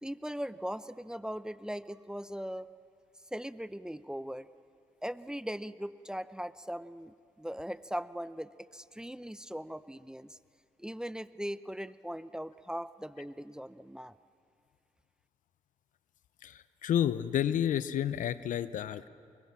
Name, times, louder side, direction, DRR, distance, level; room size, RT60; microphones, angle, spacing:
voice 1, 0.0-2.7 3.3-4.5 5.0-10.4 10.8-14.1, equal, 5° right, 15 dB, 0.8 m, -39 dB
voice 2, 16.4-19.1, left 10 dB, 70° left, 15 dB, 0.7 m, -30 dB
25.0 x 22.0 x 7.6 m, 2.3 s
hypercardioid pair, 45°, 14 cm